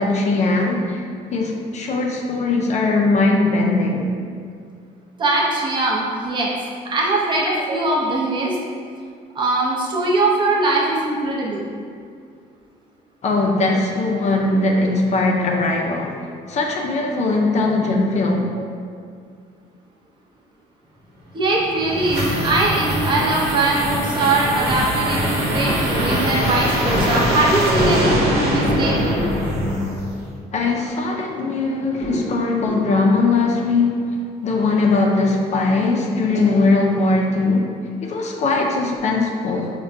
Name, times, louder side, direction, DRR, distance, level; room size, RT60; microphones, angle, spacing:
voice 1, 0.0-4.1 13.2-18.6 30.5-34.2 34.4-37.7 38.0-39.7, left 3 dB, 45° left, 0 dB, 0.4 m, -20 dB
voice 2, 5.2-6.5 6.9-8.6 9.3-11.6 21.3-29.2 32.0-32.3 32.6-32.9, right 2 dB, 30° right, -3 dB, 0.6 m, -21 dB
sound 1, 21.4-30.3, equal, 70° right, 0.9 m, -22 dB
4.7 x 2.2 x 2.6 m, 2.2 s
cardioid pair, 110°, 17 cm